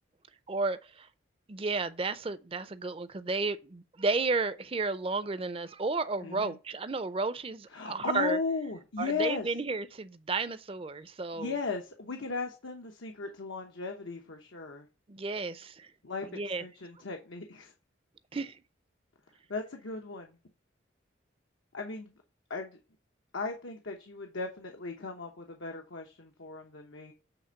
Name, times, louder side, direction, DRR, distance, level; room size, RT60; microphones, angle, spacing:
voice 1, 0.5-1.1 1.5-8.4 9.0-11.5 15.1-15.9 16.3-16.6 18.3-18.6, right 3 dB, 30° right, 0.5 m, -32 dB
voice 2, 6.2-6.6 7.7-9.5 11.4-14.9 16.0-17.7 19.5-20.4 21.7-22.1 22.5-22.8 23.3-27.1, left 4 dB, 85° left, 1.0 m, -36 dB
8.0 x 3.4 x 6.5 m
head